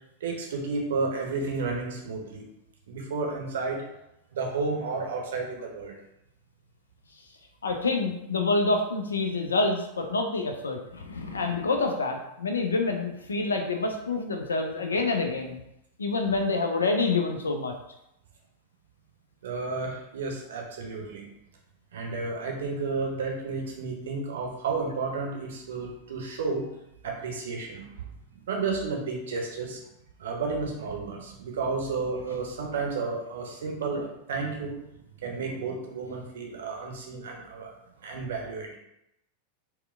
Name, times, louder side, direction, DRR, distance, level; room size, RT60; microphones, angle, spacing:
voice 1, 0.2-2.4 2.9-3.8 4.3-6.0 19.4-21.3 21.9-26.7 27.0-27.8 28.3-29.8 30.2-34.8 35.2-37.7 38.0-38.7, right 4 dB, 60° right, 0 dB, 0.6 m, -32 dB
voice 2, 7.6-15.6 16.0-17.7, left 3 dB, 70° left, 4 dB, 0.4 m, -27 dB
4.2 x 2.1 x 2.4 m, 0.83 s
figure-of-eight pair, 90°, 0 cm